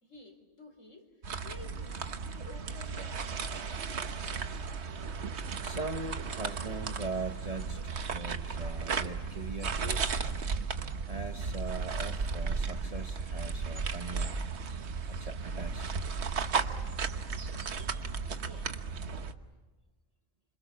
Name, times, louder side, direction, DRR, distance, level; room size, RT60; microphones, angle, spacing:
voice 1, 0.0-3.5 18.3-18.9, left 2 dB, 75° left, 5 dB, 4.2 m, -52 dB
sound 1, 1.2-19.3, right 5 dB, 60° right, 1.4 m, -35 dB
voice 2, 5.6-10.3 11.1-14.4 15.1-16.0 17.5-17.6, right 3 dB, 30° right, 7 dB, 1.0 m, -40 dB
27.0 x 26.0 x 7.1 m, 1.3 s
omnidirectional pair, 1.3 m